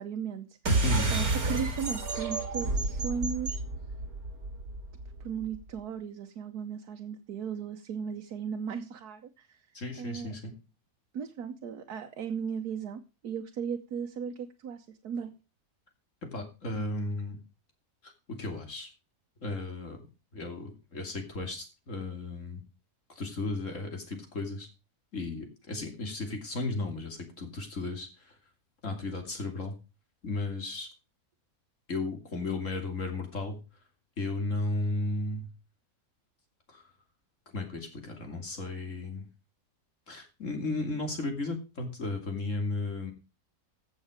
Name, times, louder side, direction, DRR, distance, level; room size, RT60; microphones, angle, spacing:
voice 1, 0.0-0.8 1.1-3.6 5.2-9.6 10.0-10.3 11.1-15.4, right 7 dB, 85° right, 4 dB, 1.5 m, -36 dB
sound 1, 0.6-5.6, right 2 dB, 70° right, 2.7 m, -30 dB
voice 2, 9.7-10.5 16.3-17.4 18.0-18.9 19.4-20.0 20.3-22.6 23.2-24.7 25.1-28.3 28.8-29.8 30.2-30.9 31.9-33.6 34.2-35.5 36.7-36.8 37.5-39.3 40.1-43.1, left 2 dB, 55° left, 4 dB, 3.1 m, -34 dB
15.5 x 6.5 x 5.0 m, 0.31 s
omnidirectional pair, 1.6 m